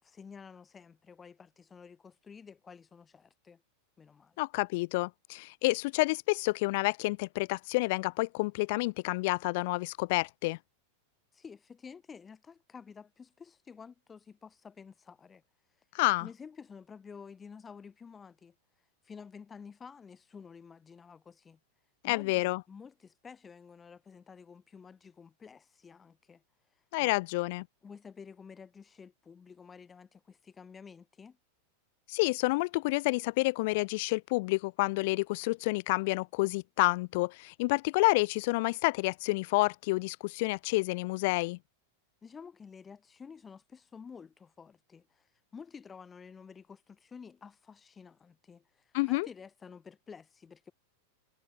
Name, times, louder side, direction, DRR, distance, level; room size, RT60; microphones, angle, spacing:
voice 1, 0.0-3.6 4.0-4.4 11.3-15.4 16.2-18.5 19.0-21.6 22.0-26.4 27.0-27.1 27.8-31.4 42.2-45.3 45.5-50.7, left 6 dB, 20° left, 4.3 m, -51 dB
voice 2, 4.4-10.6 15.9-16.3 22.0-22.6 26.9-27.7 32.1-41.6 48.9-49.3, left 24 dB, 50° left, 0.4 m, -29 dB
figure-of-eight pair, 90°, 0 cm